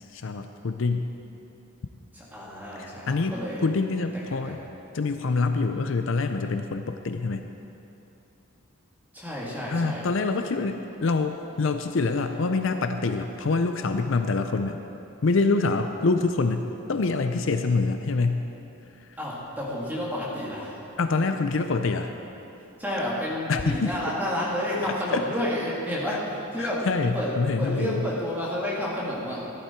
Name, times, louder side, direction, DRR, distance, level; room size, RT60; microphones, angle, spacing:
voice 1, 0.1-1.1 2.8-3.4 3.6-4.6 4.9-7.5 9.7-14.8 15.2-16.6 16.9-18.4 19.1-19.2 21.0-22.1 23.5-23.9 25.1-25.2 26.1-26.2 26.6-28.0, left 3 dB, 60° left, 7 dB, 0.5 m, -25 dB
voice 2, 2.1-3.6 4.1-4.6 9.1-10.1 19.2-20.7 21.2-21.3 22.8-26.8 27.1-27.3 27.6-29.4, left 1 dB, 10° right, -7 dB, 2.3 m, -30 dB
14.5 x 11.0 x 4.6 m, 2.9 s
head